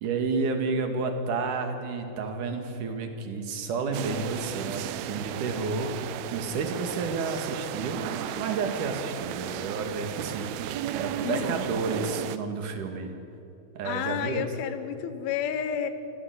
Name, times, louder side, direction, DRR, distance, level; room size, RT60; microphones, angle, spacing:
voice 1, 0.0-13.1 13.7-14.5, right 4 dB, 55° right, 5 dB, 3.2 m, -31 dB
sound 1, 3.9-12.4, right 12 dB, 80° right, 2.5 m, -35 dB
voice 2, 11.2-11.6 13.8-15.9, left 9 dB, 70° left, 10 dB, 3.0 m, -31 dB
26.0 x 16.5 x 8.1 m, 3.0 s
omnidirectional pair, 4.8 m